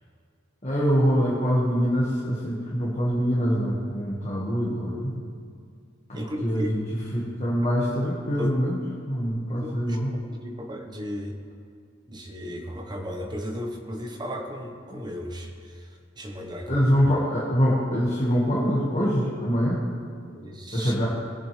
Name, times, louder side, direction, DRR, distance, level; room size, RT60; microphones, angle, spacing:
voice 1, 0.6-5.2 6.1-6.8 7.1-8.8 9.1-10.1 14.9-15.0 16.7-19.8 20.7-21.1, equal, 35° left, -6 dB, 1.8 m, -24 dB
voice 2, 6.1-6.7 8.4-8.7 9.5-10.0 10.3-11.4 12.1-16.9 20.3-20.9, equal, 20° right, 2 dB, 1.2 m, -35 dB
20.5 x 8.6 x 3.4 m, 2.2 s
head